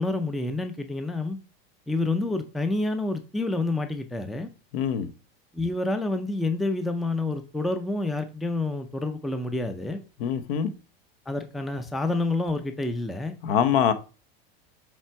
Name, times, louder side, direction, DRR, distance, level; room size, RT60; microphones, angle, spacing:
voice 1, 0.0-1.4 1.9-4.5 5.5-10.0 11.3-13.3, left 2 dB, ahead, 0.3 m, -28 dB
voice 2, 4.7-5.1 10.2-10.7 13.4-13.9, left 8 dB, 75° left, 1.0 m, -23 dB
7.3 x 3.3 x 4.5 m
supercardioid pair, 140°, 29 cm